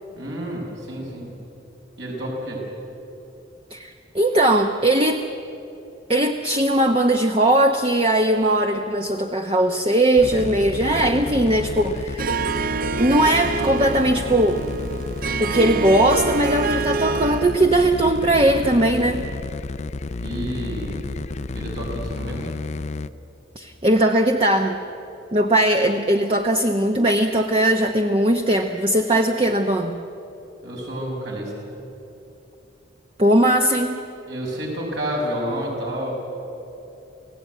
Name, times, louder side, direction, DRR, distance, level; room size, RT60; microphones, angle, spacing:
voice 1, 0.2-1.3 2.0-2.6 20.2-21.0 21.5-22.5 30.6-31.5 34.3-36.1, equal, 70° right, -2 dB, 5.8 m, -29 dB
voice 2, 3.7-5.2 6.1-12.4 13.0-14.6 15.4-19.3 23.6-24.8 25.3-30.0 33.2-34.0, right 1 dB, 30° right, 4 dB, 0.9 m, -19 dB
sound 1, 10.2-23.1, left 3 dB, 35° left, 0.5 m, -31 dB
Harp, 12.2-17.7, right 4 dB, 45° right, 0.5 m, -27 dB
28.5 x 17.0 x 9.3 m, 2.9 s
head